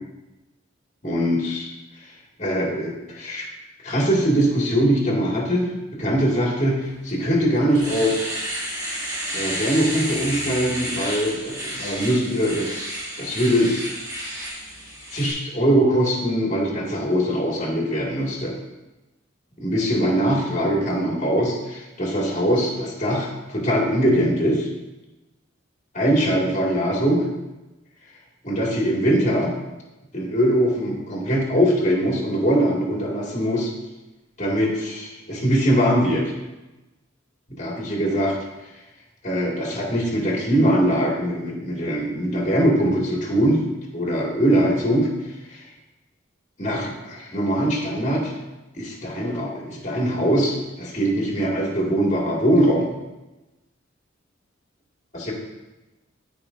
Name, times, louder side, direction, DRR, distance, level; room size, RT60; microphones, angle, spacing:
voice 1, 1.0-1.7 2.4-3.5 3.8-8.2 9.3-12.8 13.2-14.0 15.1-18.6 19.6-24.7 25.9-27.2 28.4-29.5 30.1-33.7 34.4-36.3 37.5-38.4 39.2-43.6 43.9-45.1 45.5-45.6 46.6-48.3 48.7-52.9 55.3-55.4, equal, 40° left, -2 dB, 1.9 m, -22 dB
Domestic sounds home sounds, 7.1-7.2 7.6-15.3, equal, 20° right, 1.9 m, -31 dB
13.0 x 5.0 x 2.5 m, 1.0 s
head